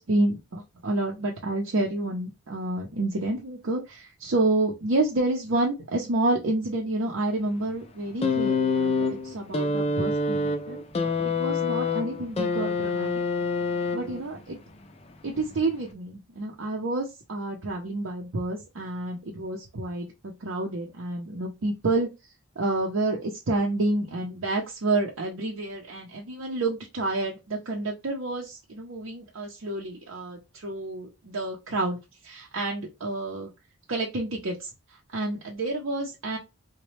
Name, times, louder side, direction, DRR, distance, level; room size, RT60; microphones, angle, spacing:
voice 1, 0.0-13.1 13.9-14.6 15.2-32.0 32.2-33.5 33.9-36.4, right 2 dB, 75° right, -2 dB, 0.6 m, -29 dB
sound 1, 8.2-14.4 15.4-15.5, left 3 dB, 30° left, 0.4 m, -26 dB
4.0 x 2.2 x 3.1 m, 0.25 s
head